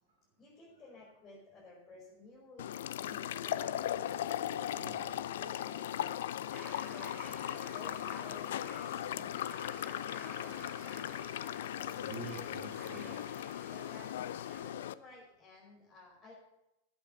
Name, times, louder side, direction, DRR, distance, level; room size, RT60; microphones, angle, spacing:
voice 1, 0.4-2.7 3.0-8.5 8.7-9.6 9.9-11.1 11.7-11.9 13.7-16.3, left 2 dB, 25° left, -5 dB, 5.7 m, -55 dB
sound 1, 2.6-14.9, left 11 dB, 60° left, 0.5 m, -38 dB
voice 2, 4.7-5.1 6.5-7.8 8.1-8.2 11.9-13.2, right 4 dB, 55° right, -3 dB, 5.5 m, -49 dB
sound 2, 6.5-14.6, right 4 dB, 20° right, 3.3 m, -54 dB
15.0 x 10.5 x 6.6 m, 0.89 s
figure-of-eight pair, 90°, 0 cm